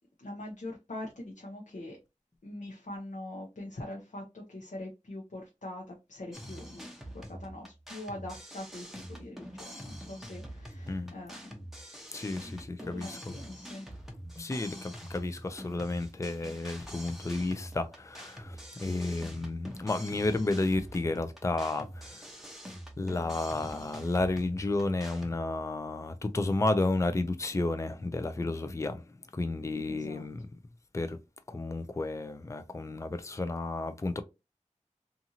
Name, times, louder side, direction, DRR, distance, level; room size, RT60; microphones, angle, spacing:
voice 1, 0.2-2.0 2.4-6.9 7.1-11.6 12.4-13.9 29.9-30.2, left 1 dB, 75° left, 0.7 m, -43 dB
sound 1, 6.3-25.4, equal, ahead, 0.8 m, -45 dB
voice 2, 12.1-13.2 14.2-22.2 23.0-29.1 29.3-30.5 30.9-31.2 31.5-34.2, left 2 dB, 25° left, 0.4 m, -32 dB
2.7 x 2.5 x 2.7 m
wide cardioid pair, 45°, 13 cm